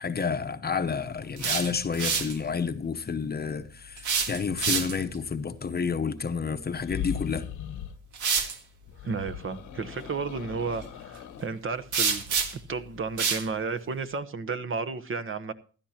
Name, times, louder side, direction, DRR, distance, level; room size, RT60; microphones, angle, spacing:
voice 1, 0.0-7.5, left 5 dB, 30° left, 0.9 m, -30 dB
sound 1, 1.2-2.4 4.0-5.1 7.2-7.4 8.1-8.6 11.9-12.7 13.2-13.5, right 5 dB, 85° right, 1.8 m, -27 dB
sound 2, 6.7-8.0 8.9-11.5, left 9 dB, 75° left, 1.2 m, -38 dB
voice 2, 9.0-12.3 12.7-15.5, right 4 dB, 45° right, 1.0 m, -32 dB
15.5 x 12.0 x 2.9 m
cardioid pair, 90°, 30 cm